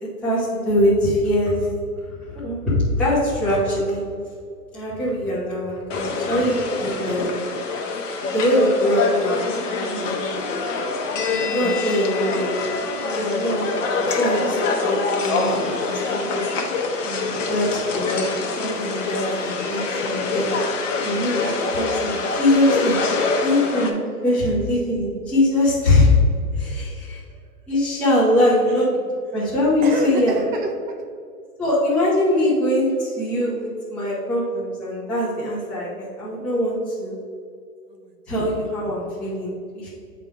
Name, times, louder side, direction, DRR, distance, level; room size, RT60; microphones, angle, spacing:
voice 1, 0.0-1.7 2.3-4.0 4.7-7.4 8.3-10.3 11.2-12.5 13.0-16.5 17.0-17.2 17.5-20.6 21.0-23.0 23.4-26.1 26.5-27.2 27.7-29.0 29.3-30.4 31.6-37.2 38.3-39.9, left 1 dB, ahead, -11 dB, 1.2 m, -22 dB
sound 1, 5.9-23.9, left 4 dB, 50° left, 1.0 m, -25 dB
voice 2, 29.8-31.1 37.9-38.4, right 1 dB, 30° right, 3 dB, 0.8 m, -30 dB
8.7 x 3.7 x 4.7 m, 2.3 s
hypercardioid pair, 155°, 48 cm